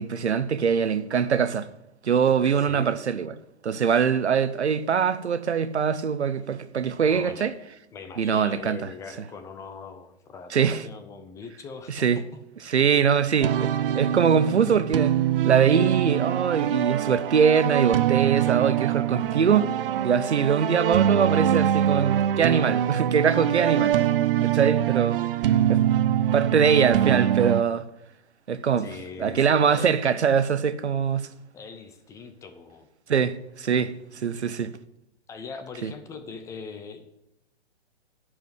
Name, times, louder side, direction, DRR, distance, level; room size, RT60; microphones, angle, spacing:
voice 1, 0.0-1.7 2.0-3.3 3.6-7.5 8.2-8.8 10.5-10.8 11.9-12.2 12.7-15.1 15.4-19.7 20.0-23.9 24.6-25.2 25.7-25.8 26.3-27.9 28.5-28.9 29.2-31.3 33.1-34.7 35.8-35.9, right 7 dB, 90° right, 0.8 m, -23 dB
voice 2, 2.6-3.0 7.1-7.5 7.9-12.2 12.6-12.8 13.2-13.3 23.6-24.7 28.8-30.0 31.5-32.9 35.3-37.0, left 5 dB, 10° left, 0.5 m, -41 dB
sound 1, 13.4-27.6, right 11 dB, 55° right, 0.6 m, -24 dB
11.0 x 4.9 x 7.8 m
hypercardioid pair, 130°, 33 cm